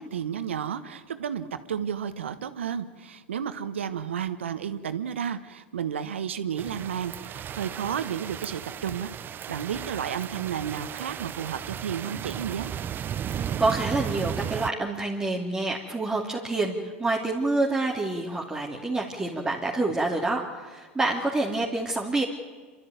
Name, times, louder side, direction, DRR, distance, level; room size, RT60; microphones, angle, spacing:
voice 1, 0.0-9.1 9.5-12.7, right 8 dB, 85° right, 11 dB, 1.3 m, -32 dB
sound 1, 6.6-14.7, right 9 dB, 35° right, 0.7 m, -35 dB
voice 2, 13.4-22.2, right 2 dB, 10° right, -2 dB, 2.7 m, -27 dB
27.0 x 13.0 x 9.3 m, 1.4 s
hypercardioid pair, 95°, 6 cm